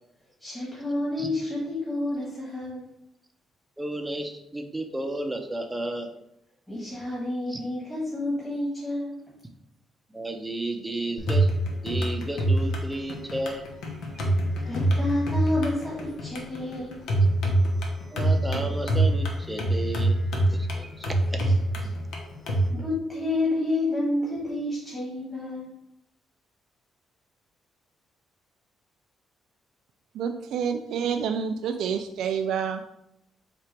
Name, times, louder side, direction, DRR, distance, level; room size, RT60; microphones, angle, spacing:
voice 1, 0.4-2.9 6.7-9.2 14.6-17.0 21.4-21.5 22.7-25.7, left 2 dB, 5° left, -7 dB, 1.4 m, -29 dB
voice 2, 3.8-6.1 7.5-7.6 10.1-11.5 11.8-13.6 14.1-14.3 18.1-20.1 20.5-21.4, right 1 dB, 15° right, 4 dB, 0.6 m, -33 dB
sound 1, 11.2-22.7, right 1 dB, 75° left, 0.9 m, -25 dB
voice 3, 30.1-32.8, right 7 dB, 80° right, 6 dB, 0.3 m, -28 dB
4.5 x 2.5 x 4.4 m, 0.80 s
cardioid pair, 90°, 0 cm